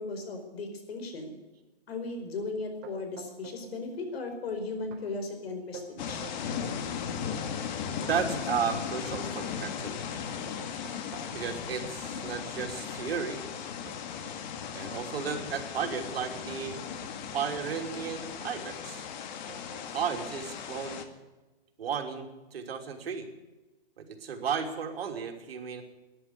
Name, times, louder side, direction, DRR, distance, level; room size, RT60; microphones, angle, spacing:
voice 1, 0.0-1.4 1.9-6.2, left 3 dB, 75° left, 6 dB, 4.9 m, -36 dB
sound 1, 2.8-3.7 4.0-4.5 4.9-5.0 5.5-6.6 7.1-11.4 11.8-14.4 15.0-15.1 15.6-18.7 19.5-19.8 20.1-20.9, right 6 dB, 35° right, 3.5 m, -49 dB
sound 2, 6.0-21.0, left 7 dB, 45° left, 1.9 m, -37 dB
voice 2, 8.1-10.0 11.3-13.4 14.7-16.8 17.3-19.1 19.9-21.1 21.8-23.3 24.0-25.8, right 7 dB, 75° right, 4 dB, 3.1 m, -34 dB
13.5 x 11.0 x 9.5 m, 1.2 s
hypercardioid pair, 145°, 31 cm